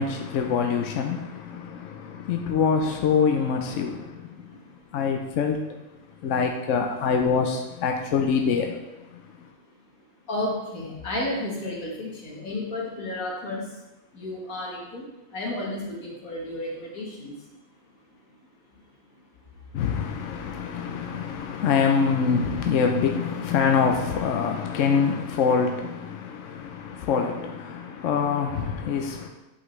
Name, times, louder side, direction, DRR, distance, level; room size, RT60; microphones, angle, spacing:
voice 1, 0.0-4.3 4.9-5.6 6.2-8.8 9.1-9.2 19.7-29.3, left 6 dB, 70° left, 0.9 m, -25 dB
voice 2, 4.3-5.0 9.6-9.8 10.3-13.8 14.1-17.5 18.7-18.8 19.5-19.9, left 1 dB, 90° left, 2.0 m, -33 dB
8.2 x 5.6 x 3.2 m
omnidirectional pair, 1.4 m